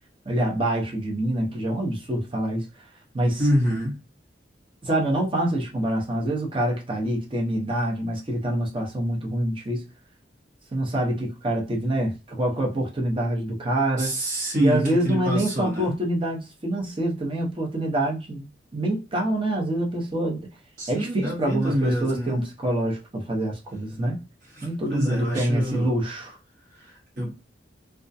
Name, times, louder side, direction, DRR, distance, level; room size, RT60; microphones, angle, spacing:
voice 1, 0.2-2.7 3.1-3.4 4.8-9.8 10.7-14.2 14.6-18.5 18.7-20.4 20.9-24.2 24.6-26.4, right 1 dB, 30° right, 0.7 m, -26 dB
voice 2, 3.4-4.0 14.0-15.9 20.8-22.4 24.5-25.9 26.7-27.4, equal, 50° right, 1.1 m, -27 dB
2.3 x 2.1 x 2.6 m
head